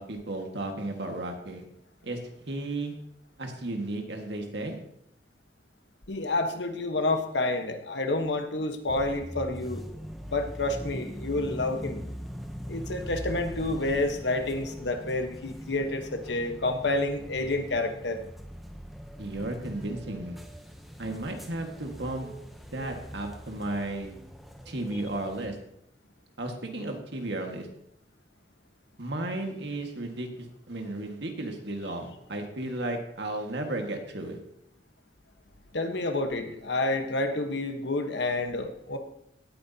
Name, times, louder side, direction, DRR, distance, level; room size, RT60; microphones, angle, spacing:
voice 1, 0.0-1.6 2.0-2.2 2.5-2.9 3.4-4.8 19.2-20.4 21.0-22.3 22.7-24.1 24.7-25.6 26.4-27.7 29.0-30.3 30.7-34.4, right 2 dB, 75° right, 3 dB, 1.8 m, -34 dB
voice 2, 6.1-9.8 10.3-12.0 12.7-18.2 35.7-39.0, left 2 dB, 80° left, 6 dB, 1.3 m, -29 dB
sound 1, 8.9-25.5, equal, ahead, 0.8 m, -41 dB
17.5 x 9.2 x 2.9 m, 0.76 s
head